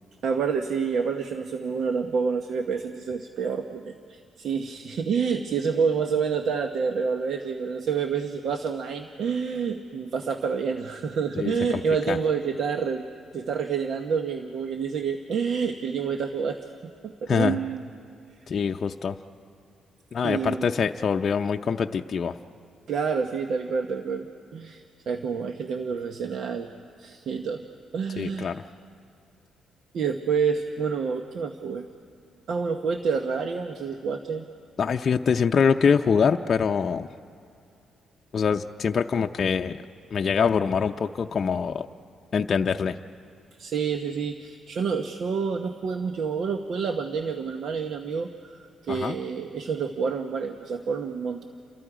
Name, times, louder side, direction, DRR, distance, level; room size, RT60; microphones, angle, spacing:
voice 1, 0.2-13.0 13.3-17.8 20.2-20.7 22.9-26.7 27.0-27.6 27.9-28.6 29.9-31.9 32.5-34.5 43.6-51.4, right 6 dB, 65° right, 6 dB, 1.1 m, -28 dB
voice 2, 18.5-19.2 20.1-22.4 28.2-28.6 34.8-37.1 38.3-39.8 40.1-41.9 42.3-43.0 48.9-49.1, left 6 dB, 45° left, 4 dB, 0.6 m, -24 dB
30.0 x 26.5 x 5.0 m, 2.4 s
cardioid pair, 90°, 0 cm